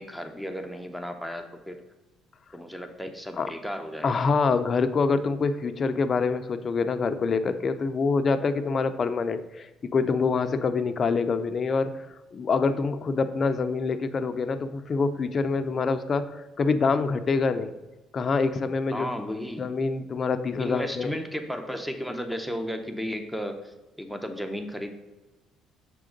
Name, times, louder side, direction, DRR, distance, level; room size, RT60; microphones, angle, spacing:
voice 1, 0.0-1.8 2.5-4.3 18.9-19.7 20.6-24.9, equal, ahead, 6 dB, 0.7 m, -34 dB
voice 2, 4.0-17.7 18.1-19.1 19.6-21.1, left 4 dB, 40° left, 9 dB, 0.5 m, -26 dB
6.8 x 3.8 x 5.1 m, 1.1 s
cardioid pair, 105°, 0 cm